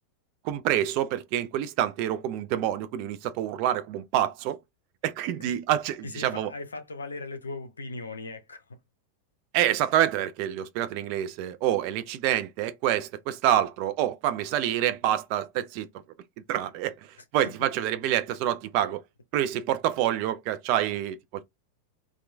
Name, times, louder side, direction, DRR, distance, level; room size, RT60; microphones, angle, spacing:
voice 1, 0.4-4.6 5.0-6.5 9.5-15.9 16.5-16.9 17.3-19.0 19.3-21.4, right 11 dB, 45° right, 0.4 m, -27 dB
voice 2, 6.0-8.8 17.4-17.5, left 3 dB, 75° left, 0.6 m, -38 dB
2.9 x 2.2 x 2.2 m
figure-of-eight pair, 90°, 0 cm